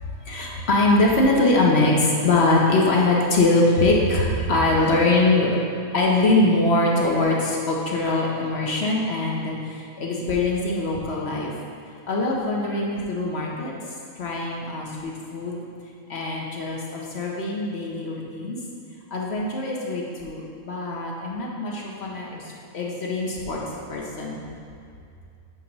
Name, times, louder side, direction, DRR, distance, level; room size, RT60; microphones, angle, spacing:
voice 1, 0.0-5.5 5.9-11.5 12.1-13.7 14.2-15.6 16.1-18.6 19.1-22.4 22.7-23.6 23.9-24.4, left 2 dB, 60° left, -2 dB, 0.9 m, -22 dB
8.5 x 3.0 x 5.2 m, 2.4 s
omnidirectional pair, 1.4 m